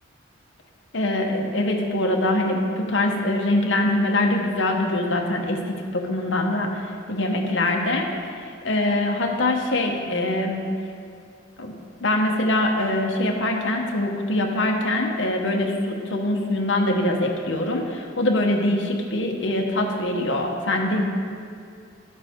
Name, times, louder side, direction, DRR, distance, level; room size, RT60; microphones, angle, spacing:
voice 1, 0.9-8.1 8.4-10.6 11.6-11.7 12.0-21.0, left 1 dB, 70° left, 1 dB, 1.2 m, -23 dB
12.5 x 8.1 x 3.7 m, 2.3 s
head